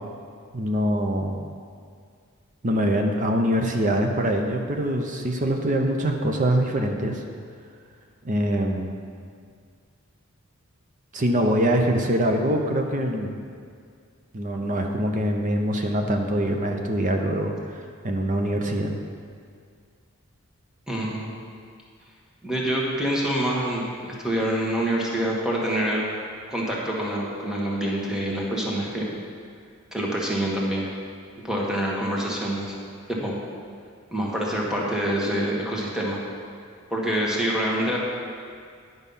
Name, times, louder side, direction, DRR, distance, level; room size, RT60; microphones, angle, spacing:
voice 1, 0.5-1.4 2.6-7.2 8.2-8.9 11.1-13.4 14.3-18.9, right 1 dB, 40° right, 3 dB, 0.7 m, -24 dB
voice 2, 20.9-21.3 22.4-26.0 26.5-29.1 29.9-30.9 31.4-32.8 33.1-33.4 34.1-36.2 36.9-38.0, right 1 dB, 5° right, -4 dB, 1.3 m, -26 dB
10.0 x 5.4 x 5.5 m, 2.2 s
head